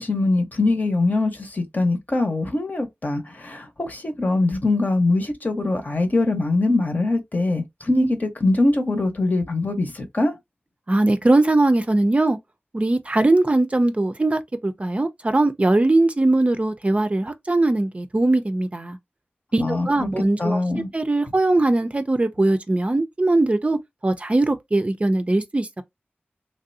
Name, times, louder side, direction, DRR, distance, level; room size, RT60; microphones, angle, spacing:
voice 1, 0.0-10.4 19.6-20.1 20.4-20.9, left 2 dB, 45° left, 0.9 m, -22 dB
voice 2, 10.9-12.4 12.7-19.0 19.5-20.6 20.9-25.8, right 2 dB, 35° right, 0.4 m, -20 dB
3.2 x 2.5 x 2.7 m
wide cardioid pair, 80°, 4 cm